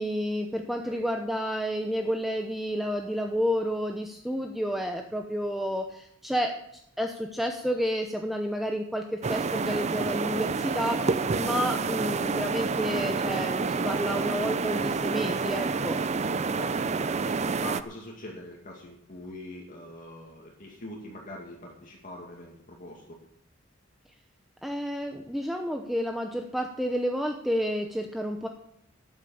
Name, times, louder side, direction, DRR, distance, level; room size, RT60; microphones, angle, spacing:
voice 1, 0.0-6.6 7.0-16.1 24.6-28.5, equal, ahead, 3 dB, 0.8 m, -30 dB
voice 2, 0.6-1.0 16.6-17.1 17.6-23.2, left 1 dB, 40° left, -2 dB, 2.2 m, -43 dB
sound 1, 9.2-17.8, right 4 dB, 35° right, 0.5 m, -28 dB
13.0 x 8.8 x 7.0 m, 0.75 s
head